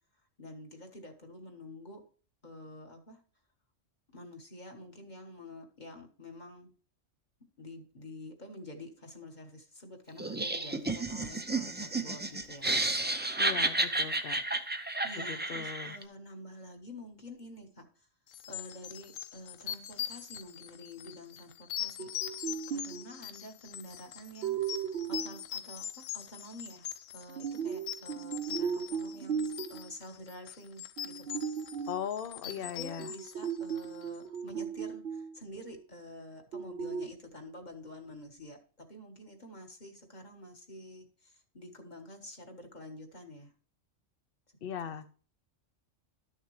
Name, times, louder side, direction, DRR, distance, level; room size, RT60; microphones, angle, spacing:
voice 1, 0.4-2.0 2.4-3.2 4.1-6.7 7.6-12.7 15.0-18.1 18.5-22.1 22.7-24.8 25.1-31.4 32.4-43.5 44.9-45.1, left 1 dB, 35° left, 3 dB, 1.6 m, -48 dB
Laughter, 10.2-16.0, right 2 dB, 15° right, 0.3 m, -32 dB
voice 2, 13.4-14.6 15.3-15.9 31.9-33.1 44.6-45.1, left 8 dB, 55° left, 12 dB, 0.8 m, -39 dB
sound 1, 18.3-34.2, left 11 dB, 90° left, 1.0 m, -42 dB
sound 2, 22.0-23.2 24.4-25.4 27.3-29.9 31.0-32.1 33.0-35.4 35.6-35.7 36.5-37.1, right 7 dB, 60° right, 0.7 m, -36 dB
12.5 x 6.5 x 3.2 m, 0.41 s
omnidirectional pair, 1.3 m